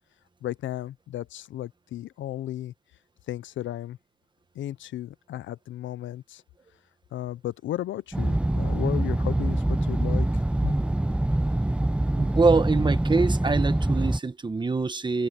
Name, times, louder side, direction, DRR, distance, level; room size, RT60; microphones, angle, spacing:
voice 1, 0.4-2.7 3.3-4.0 4.5-6.4 7.1-10.4, left 13 dB, 70° left, 0.8 m, -34 dB
sound 1, 8.1-14.2, right 1 dB, 5° right, 0.5 m, -24 dB
voice 2, 12.1-15.3, right 4 dB, 25° right, 1.4 m, -24 dB
cardioid pair, 90°, 20 cm